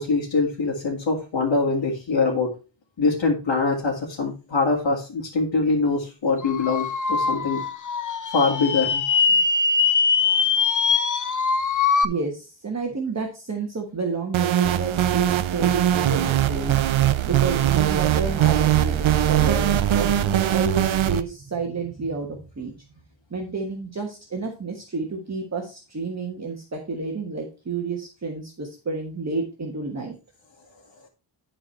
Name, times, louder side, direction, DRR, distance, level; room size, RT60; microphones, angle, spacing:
voice 1, 0.0-2.5 3.0-7.6 8.3-9.0, left 3 dB, 65° left, -4 dB, 2.2 m, -23 dB
sound 1, 6.4-12.0, left 5 dB, 40° left, 0.7 m, -22 dB
voice 2, 12.0-16.8 17.3-22.9 23.3-30.1, right 4 dB, 35° right, 1 dB, 1.3 m, -30 dB
sound 2, 14.3-21.2, right 11 dB, 75° right, 0.6 m, -21 dB
11.0 x 4.6 x 4.4 m, 0.32 s
wide cardioid pair, 175°, 47 cm